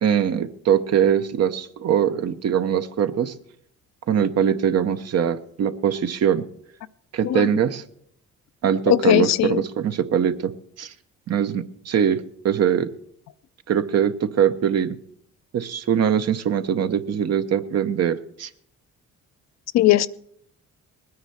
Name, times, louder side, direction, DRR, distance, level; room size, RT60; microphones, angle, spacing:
voice 1, 0.0-3.3 4.1-6.4 7.1-7.8 8.6-10.9 11.3-12.9 13.7-15.0 15.5-18.5, right 8 dB, 55° right, 10 dB, 0.8 m, -22 dB
voice 2, 8.9-9.6 19.7-20.1, left 14 dB, 60° left, 14 dB, 0.5 m, -18 dB
19.5 x 9.7 x 4.2 m, 0.69 s
cardioid pair, 90°, 30 cm